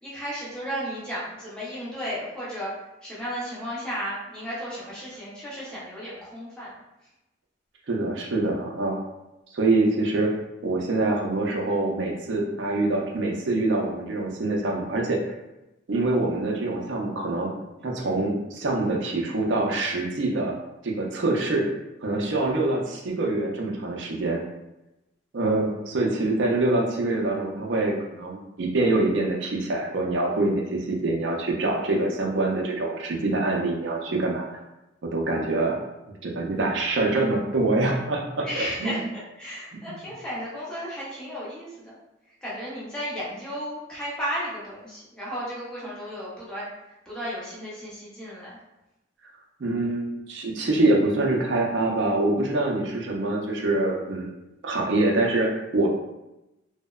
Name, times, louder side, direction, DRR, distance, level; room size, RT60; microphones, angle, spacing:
voice 1, 0.0-2.7 3.0-6.7 38.4-42.0 42.4-46.7 47.1-48.6, equal, 5° left, -8 dB, 0.6 m, -34 dB
voice 2, 7.9-9.0 9.5-10.3 10.6-15.3 15.9-17.5 17.8-20.5 20.8-21.7 22.0-24.4 25.3-34.6 35.1-35.8 36.2-39.0 49.6-54.3 54.6-55.9, right 2 dB, 60° right, 0 dB, 0.4 m, -25 dB
2.6 x 2.0 x 2.3 m, 0.96 s
head